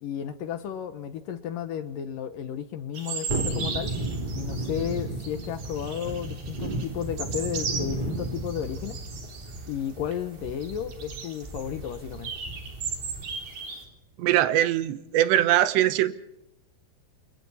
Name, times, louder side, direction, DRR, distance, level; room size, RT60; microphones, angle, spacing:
voice 1, 0.0-3.9 4.4-9.0 9.7-12.3, left 9 dB, 70° left, 11 dB, 2.3 m, -33 dB
sound 1, 2.9-9.9 10.2-10.3 10.5-13.8, right 5 dB, 50° right, 5.1 m, -37 dB
Thunderstorm, 3.3-13.5 13.8-13.9, right 1 dB, 15° right, 2.1 m, -34 dB
voice 2, 14.2-16.1, right 13 dB, 90° right, 13 dB, 3.4 m, -22 dB
29.5 x 26.5 x 4.2 m, 0.79 s
omnidirectional pair, 4.8 m